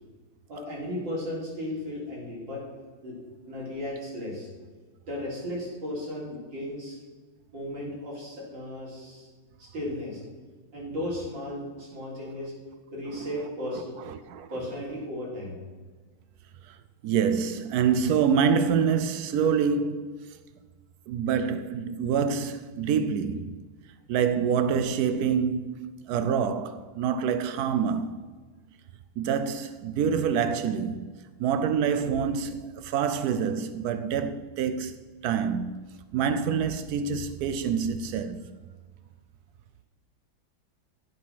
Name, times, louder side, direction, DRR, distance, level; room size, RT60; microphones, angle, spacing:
voice 1, 0.5-2.6 3.0-3.1 3.5-4.5 5.0-7.0 7.5-9.3 9.6-10.2 10.7-12.5 12.9-13.9 14.5-15.5, left 1 dB, 60° right, 4.2 m, -35 dB
voice 2, 13.7-14.5 16.6-16.8 17.0-20.4 21.1-23.6 24.1-28.3 29.2-35.8 36.1-38.4, right 7 dB, 85° right, 0.8 m, -26 dB
15.0 x 5.3 x 5.8 m
omnidirectional pair, 2.3 m